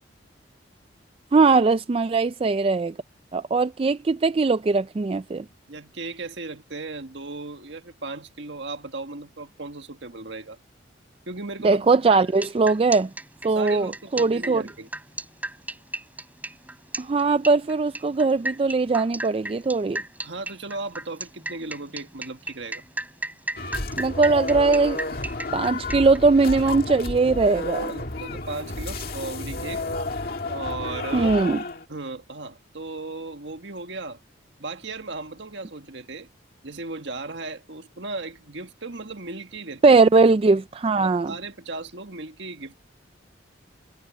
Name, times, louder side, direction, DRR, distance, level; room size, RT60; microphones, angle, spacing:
voice 1, 1.3-2.9 3.3-5.4 11.6-13.1 13.4-14.6 17.0-20.0 24.0-25.0 25.5-27.9 31.1-31.6 39.8-41.3, right 3 dB, 30° right, 0.3 m, -20 dB
voice 2, 5.7-10.6 11.3-11.8 13.5-14.9 20.2-22.8 27.9-29.8 30.5-31.4 31.9-34.2 34.6-36.3 36.6-40.0 41.0-42.8, right 3 dB, 65° right, 1.8 m, -36 dB
sound 1, 12.3-26.2, right 1 dB, 10° right, 4.6 m, -34 dB
sound 2, 23.6-31.9, left 2 dB, 50° left, 2.0 m, -31 dB
head